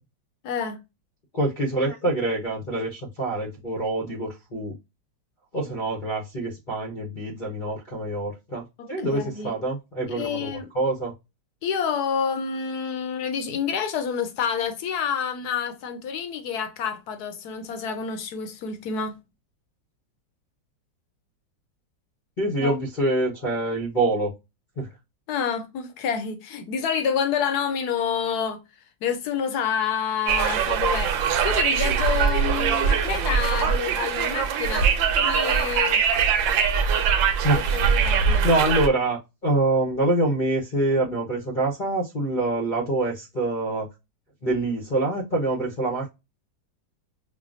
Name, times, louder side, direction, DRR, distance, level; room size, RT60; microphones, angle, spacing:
voice 1, 0.4-0.8 5.6-5.9 8.8-9.6 10.1-10.7 11.6-19.2 22.6-22.8 25.3-28.6 29.0-31.2 31.4-36.0 37.7-38.5, left 7 dB, 65° left, 1.1 m, -28 dB
voice 2, 1.3-4.7 5.5-11.1 22.4-24.3 24.8-24.9 37.4-37.6 38.4-43.9 44.4-46.1, right 2 dB, 40° left, 0.7 m, -25 dB
Conversation, 30.3-38.9, right 7 dB, 85° right, 1.4 m, -22 dB
5.7 x 2.2 x 2.4 m
omnidirectional pair, 2.0 m